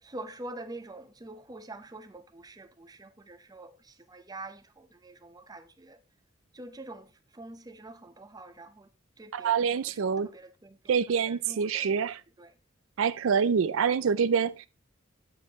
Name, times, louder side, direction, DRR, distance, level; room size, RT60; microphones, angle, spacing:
voice 1, 0.0-6.0 6.5-8.9 9.2-10.8 11.3-12.1 12.4-12.5, right 2 dB, 20° right, 0.7 m, -46 dB
voice 2, 9.3-10.3 10.9-12.2 13.0-14.7, right 6 dB, 80° right, 0.4 m, -26 dB
8.6 x 7.7 x 2.9 m
head